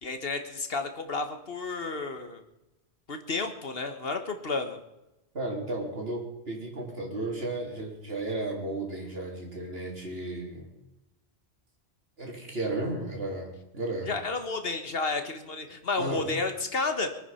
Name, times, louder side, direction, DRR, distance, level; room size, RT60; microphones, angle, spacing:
voice 1, 0.0-2.4 3.1-4.8 14.0-17.1, left 3 dB, 65° left, 7 dB, 1.6 m, -31 dB
voice 2, 5.3-10.7 12.2-14.1 16.0-16.3, right 2 dB, 65° right, 0 dB, 3.6 m, -34 dB
23.5 x 9.2 x 5.7 m, 0.96 s
omnidirectional pair, 1.1 m